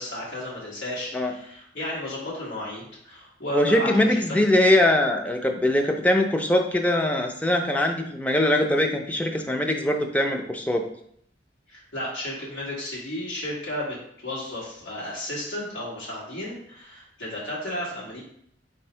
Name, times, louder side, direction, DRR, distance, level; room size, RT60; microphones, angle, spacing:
voice 1, 0.0-4.2 11.7-14.0 14.2-18.2, left 1 dB, 85° left, -6 dB, 1.5 m, -33 dB
voice 2, 3.5-10.8, left 1 dB, 10° left, 4 dB, 0.4 m, -22 dB
4.0 x 2.7 x 4.3 m, 0.67 s
head